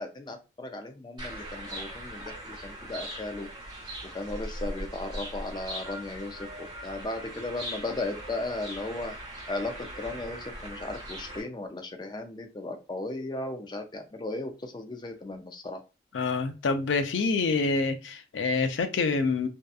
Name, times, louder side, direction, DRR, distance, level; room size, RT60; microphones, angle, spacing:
voice 1, 0.0-3.5 4.1-9.2 9.5-15.8, left 2 dB, 25° left, 0.3 m, -36 dB
sound 1, 1.2-11.4, right 1 dB, 25° right, 0.9 m, -40 dB
voice 2, 16.1-19.5, left 4 dB, 90° left, 0.4 m, -26 dB
2.7 x 2.2 x 2.3 m
head